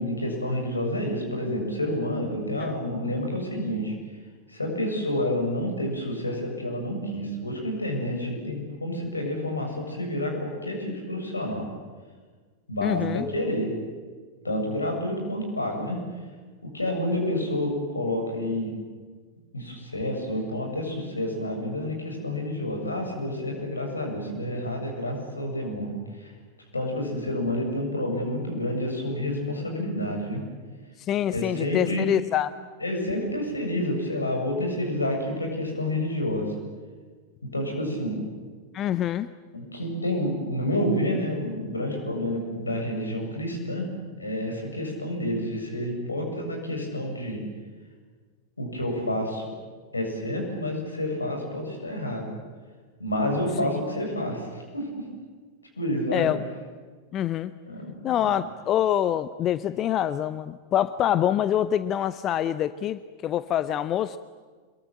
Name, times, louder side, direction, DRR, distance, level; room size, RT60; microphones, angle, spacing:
voice 1, 0.0-3.9 4.5-11.7 12.7-13.7 14.4-16.0 16.6-18.7 19.5-26.3 26.7-30.4 31.3-32.1 32.8-36.5 37.5-38.2 39.5-43.9 44.2-47.4 48.6-49.5 49.9-52.3 53.0-55.0 55.8-56.3 57.7-58.4, left 1 dB, 80° left, 2 dB, 7.6 m, -29 dB
voice 2, 12.8-13.3 31.0-32.5 38.7-39.3 53.6-53.8 56.1-56.4 57.1-57.5 58.0-64.2, left 11 dB, 30° left, 15 dB, 0.7 m, -25 dB
26.5 x 23.0 x 8.9 m, 1.5 s
figure-of-eight pair, 90°, 0 cm